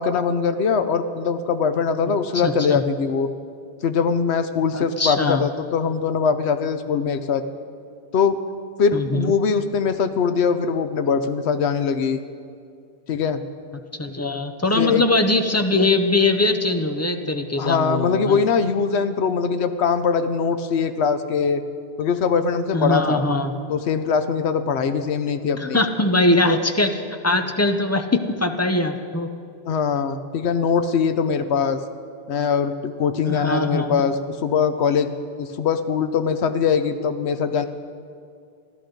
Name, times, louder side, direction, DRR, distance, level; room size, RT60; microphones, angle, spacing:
voice 1, 0.0-3.3 3.8-7.4 8.1-8.4 8.8-12.2 13.1-13.4 14.8-15.0 17.6-21.6 22.0-23.2 23.7-25.8 26.5-26.6 29.6-31.8 32.3-35.1 35.4-37.7, left 6 dB, 85° left, 10 dB, 1.0 m, -22 dB
voice 2, 2.1-2.8 4.7-5.4 8.9-9.3 14.0-18.4 22.7-23.5 25.6-29.3 33.3-34.0, left 2 dB, 20° left, 6 dB, 0.5 m, -22 dB
14.0 x 11.5 x 5.2 m, 2.4 s
omnidirectional pair, 1.1 m